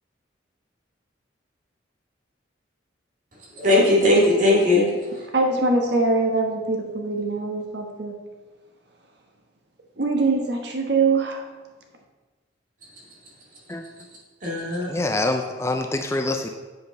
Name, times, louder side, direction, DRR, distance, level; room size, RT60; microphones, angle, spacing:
voice 1, 3.5-5.3 14.4-14.9, left 1 dB, 45° right, -5 dB, 2.2 m, -19 dB
voice 2, 5.3-8.1 10.0-11.4, right 3 dB, 60° right, 2 dB, 1.3 m, -23 dB
voice 3, 14.9-16.5, left 2 dB, 15° left, 5 dB, 0.4 m, -25 dB
8.0 x 5.3 x 5.6 m, 1.3 s
head